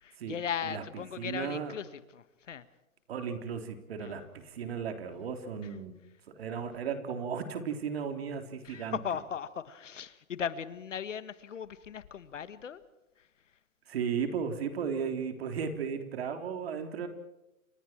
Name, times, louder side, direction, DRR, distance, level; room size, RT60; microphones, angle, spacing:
voice 1, 0.0-2.6 4.0-4.2 8.6-12.8 13.2-13.3, left 8 dB, 60° left, 1.6 m, -38 dB
voice 2, 1.2-1.7 3.1-6.0 6.3-9.0 13.9-17.1, right 6 dB, 45° right, 3.7 m, -35 dB
29.0 x 27.0 x 4.6 m
hypercardioid pair, 155°, 41 cm